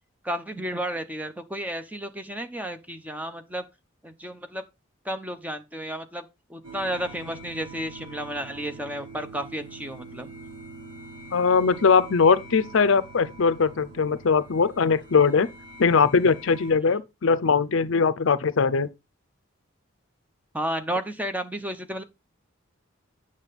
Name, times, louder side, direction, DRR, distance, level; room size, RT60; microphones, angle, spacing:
voice 1, 0.2-3.7 4.0-4.6 5.0-10.3 20.5-22.0, right 1 dB, 10° right, 0.8 m, -32 dB
sound 1, 6.6-16.7, right 2 dB, 65° right, 4.5 m, -44 dB
voice 2, 11.3-15.5 15.8-18.9, left 5 dB, 65° left, 0.6 m, -21 dB
8.7 x 6.4 x 4.1 m
head